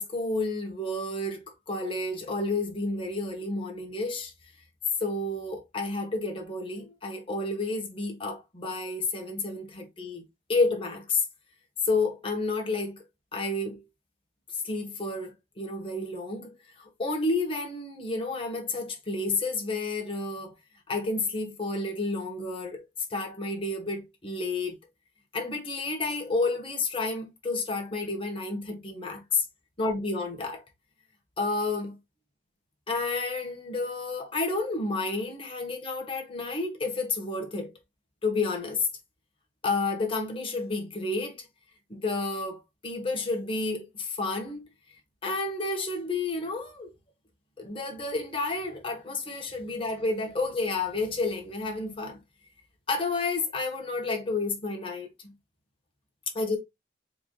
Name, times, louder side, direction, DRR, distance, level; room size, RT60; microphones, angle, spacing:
voice 1, 0.0-4.3 5.0-10.2 10.5-11.2 11.8-13.0 13.3-13.8 14.5-20.5 20.9-24.8 25.3-29.4 29.8-30.6 31.4-32.0 32.9-37.7 38.2-38.9 39.6-41.5 41.9-44.7 45.2-46.9 47.6-52.2 52.9-55.3 56.3-56.6, left 3 dB, 30° left, 1.3 m, -30 dB
4.7 x 3.8 x 2.3 m
head